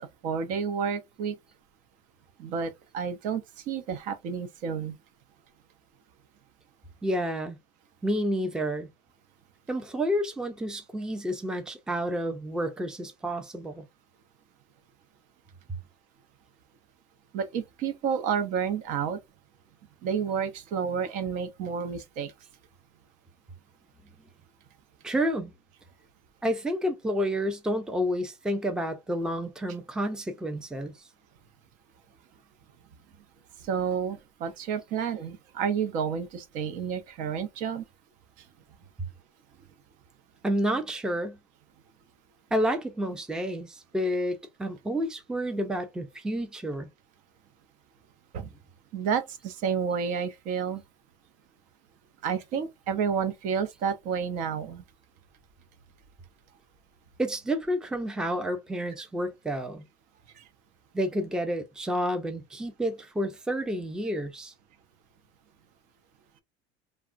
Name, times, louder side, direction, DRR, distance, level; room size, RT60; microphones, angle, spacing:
voice 1, 0.0-1.3 2.4-5.0 17.3-19.2 20.0-22.3 33.6-37.8 48.3-48.5 48.9-50.8 52.2-54.8 60.4-60.5, right 7 dB, 60° right, 0.6 m, -30 dB
voice 2, 7.0-7.6 8.0-8.9 9.7-13.8 25.0-25.5 26.4-30.9 40.4-41.4 42.5-46.9 57.2-59.8 60.9-64.5, equal, 5° right, 0.4 m, -30 dB
3.5 x 2.1 x 2.4 m
cardioid pair, 140°, 15 cm